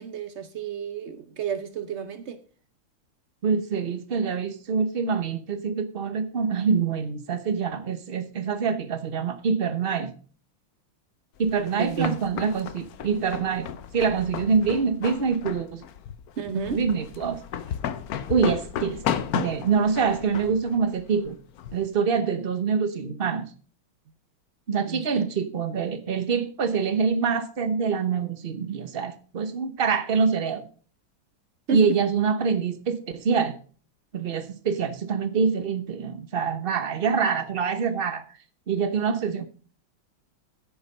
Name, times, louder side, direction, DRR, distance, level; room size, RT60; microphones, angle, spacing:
voice 1, 0.0-2.4 11.8-12.2 16.4-16.8 24.9-25.2 31.7-31.8, right 6 dB, 75° right, 0.6 m, -31 dB
voice 2, 3.4-10.1 11.4-13.7 13.9-15.8 16.7-17.4 18.1-21.4 21.7-23.5 24.7-30.7 31.7-33.6 34.1-38.2 38.7-39.5, right 5 dB, 40° right, 0.8 m, -25 dB
sound 1, 11.4-21.9, left 9 dB, 65° left, 1.0 m, -34 dB
10.5 x 8.3 x 5.3 m
omnidirectional pair, 2.2 m